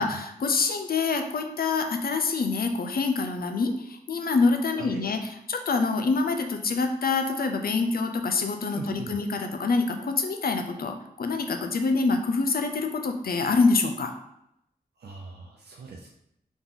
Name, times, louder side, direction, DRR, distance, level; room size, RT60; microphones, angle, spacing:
voice 1, 0.4-14.1, left 4 dB, 65° left, 6 dB, 0.6 m, -26 dB
voice 2, 4.7-5.1 8.7-9.2 15.0-16.1, right 3 dB, 85° right, 0 dB, 0.5 m, -40 dB
3.9 x 3.0 x 3.6 m, 0.78 s
cardioid pair, 60°, 17 cm